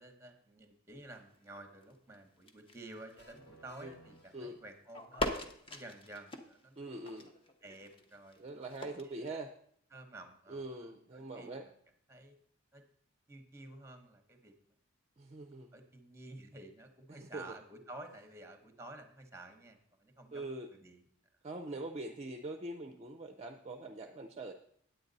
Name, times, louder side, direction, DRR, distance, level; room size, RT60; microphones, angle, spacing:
voice 1, 0.0-5.3 5.7-6.8 7.6-9.2 9.9-10.6 11.1-11.7 12.1-12.4 12.7-12.8 13.3-14.5 15.7-21.0, right 2 dB, 10° right, 6 dB, 0.9 m, -52 dB
sound 1, 1.1-3.7 4.0-4.5 4.9-9.4, left 1 dB, 25° left, 0.7 m, -42 dB
sound 2, 3.2-5.2, right 1 dB, 50° left, 1.3 m, -60 dB
voice 2, 6.8-7.3 8.4-9.6 10.5-11.7 15.2-15.7 17.1-17.6 20.3-20.7 21.4-24.5, right 2 dB, 30° right, 4 dB, 0.4 m, -43 dB
9.0 x 8.6 x 3.9 m, 0.67 s
head